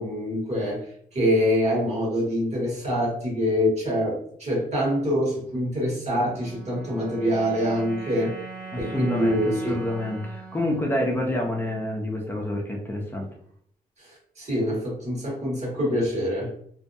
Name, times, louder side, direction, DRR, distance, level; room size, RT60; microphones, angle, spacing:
voice 1, 0.0-8.3 8.8-9.8 14.0-16.5, equal, 50° right, -4 dB, 1.4 m, -25 dB
sound 1, 6.2-12.6, right 4 dB, 75° right, 1.1 m, -42 dB
voice 2, 8.9-13.3, left 1 dB, 15° left, -1 dB, 0.6 m, -28 dB
2.6 x 2.1 x 2.6 m, 0.64 s
cardioid pair, 70°, 15 cm